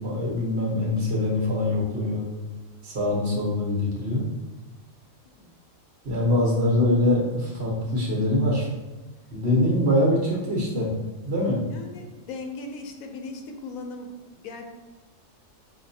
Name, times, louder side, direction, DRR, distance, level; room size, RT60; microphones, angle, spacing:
voice 1, 0.0-2.3 2.8-4.2 6.0-8.7 9.3-10.9 11.2-11.6, left 1 dB, 55° right, -3 dB, 1.2 m, -23 dB
voice 2, 11.7-14.1 14.4-14.7, left 3 dB, 80° left, 4 dB, 1.0 m, -38 dB
5.6 x 2.2 x 2.7 m, 1.2 s
omnidirectional pair, 1.4 m